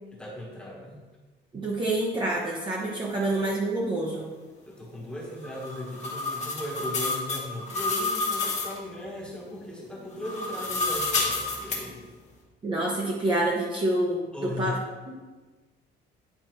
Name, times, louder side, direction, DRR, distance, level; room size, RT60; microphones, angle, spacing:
voice 1, 0.1-1.1 3.2-3.3 4.7-12.1 14.3-14.8, left 1 dB, 5° left, -4 dB, 1.3 m, -37 dB
voice 2, 1.5-4.3 12.6-14.8, right 1 dB, 25° right, -3 dB, 0.9 m, -27 dB
sound 1, 5.4-8.8 10.1-11.8, left 3 dB, 35° left, 1.3 m, -29 dB
9.1 x 4.1 x 3.0 m, 1.3 s
cardioid pair, 155°, 19 cm